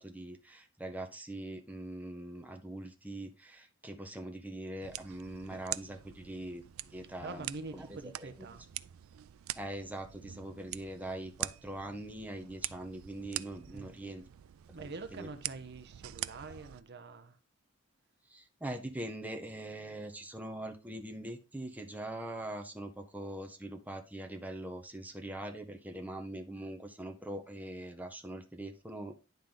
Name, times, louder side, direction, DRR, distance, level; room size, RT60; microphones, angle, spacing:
voice 1, 0.0-7.4 7.7-8.3 9.5-14.2 14.8-15.3 18.3-29.2, right 1 dB, 10° right, 0.8 m, -42 dB
sound 1, 4.8-16.8, right 14 dB, 80° right, 0.3 m, -44 dB
voice 2, 7.2-8.7 13.6-14.0 14.7-17.4, right 3 dB, 55° right, 0.8 m, -45 dB
10.5 x 3.7 x 3.7 m
head